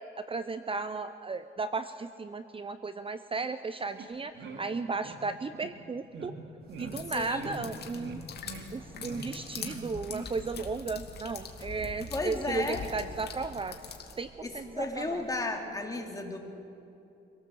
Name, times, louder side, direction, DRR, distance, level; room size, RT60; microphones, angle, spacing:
voice 1, 0.3-4.3 4.6-6.4 6.8-8.2 8.7-13.7 14.2-15.2, right 4 dB, 25° right, 11 dB, 0.8 m, -35 dB
sound 1, 4.0-4.1 4.3-4.6 5.0-5.2 5.5-5.7 6.1-6.3 6.7-6.9 7.3-7.5 7.9-8.2 8.4-8.6 9.0-9.2 9.5-9.8 10.1-10.2, right 3 dB, 70° right, 3.2 m, -43 dB
sound 2, 6.6-15.4, right 1 dB, 50° right, 6.6 m, -56 dB
sound 3, 6.8-14.2, left 5 dB, 55° left, 2.6 m, -43 dB
voice 2, 7.1-7.7 12.1-12.8 14.4-16.4, left 2 dB, 15° left, 2 dB, 3.3 m, -34 dB
25.5 x 17.5 x 7.9 m, 2.8 s
cardioid pair, 90°, 20 cm